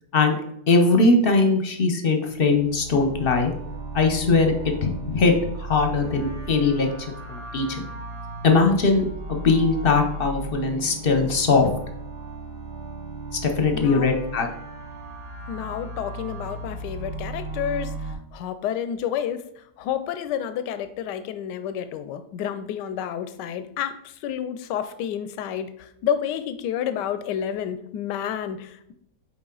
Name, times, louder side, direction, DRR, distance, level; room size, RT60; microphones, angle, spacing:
voice 1, 0.7-3.5 3.9-5.3 5.6-6.9 7.3-7.8 8.4-11.7 13.4-14.5, left 3 dB, 45° left, 4 dB, 0.8 m, -20 dB
sound 1, 2.3-18.1, right 3 dB, 75° right, 2.1 m, -36 dB
voice 2, 13.7-14.2 15.5-28.9, left 9 dB, 85° left, 10 dB, 1.2 m, -30 dB
8.8 x 3.5 x 3.8 m, 0.73 s
omnidirectional pair, 1.8 m